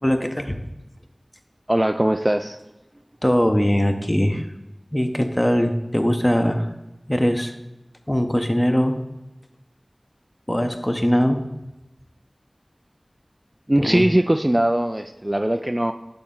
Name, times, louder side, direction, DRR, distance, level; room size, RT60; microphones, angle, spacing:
voice 1, 0.0-0.6 3.2-4.5 4.9-6.7 7.1-7.5 8.1-9.0 10.5-11.4 13.8-14.0, equal, 15° left, 6 dB, 0.8 m, -21 dB
voice 2, 1.7-2.6 13.7-15.9, right 1 dB, 25° right, 7 dB, 0.3 m, -20 dB
11.0 x 4.2 x 3.8 m, 1.0 s
wide cardioid pair, 40°, 0 cm